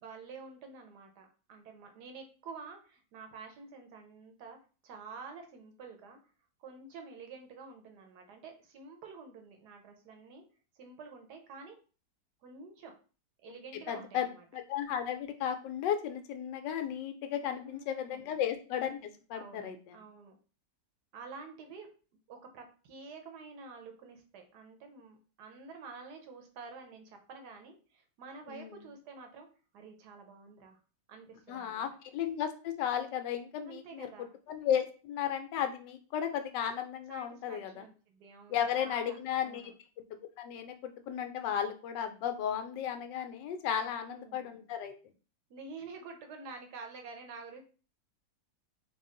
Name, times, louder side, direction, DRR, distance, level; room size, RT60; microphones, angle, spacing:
voice 1, 0.0-4.6 4.8-6.2 6.6-10.4 10.7-11.8 12.4-12.9 13.4-14.4 17.3-18.4 19.3-20.4 21.1-21.9 22.3-29.5 29.7-30.8 31.1-31.8 33.6-34.3 37.1-39.7 43.8-44.7 45.5-47.6, right 4 dB, 70° right, 4 dB, 1.2 m, -49 dB
voice 2, 13.9-14.3 14.5-20.0 28.5-28.8 31.5-34.1 34.5-37.8 38.5-39.7 40.4-44.9, left 9 dB, 80° left, 7 dB, 1.2 m, -34 dB
3.5 x 2.3 x 3.7 m, 0.36 s
omnidirectional pair, 2.0 m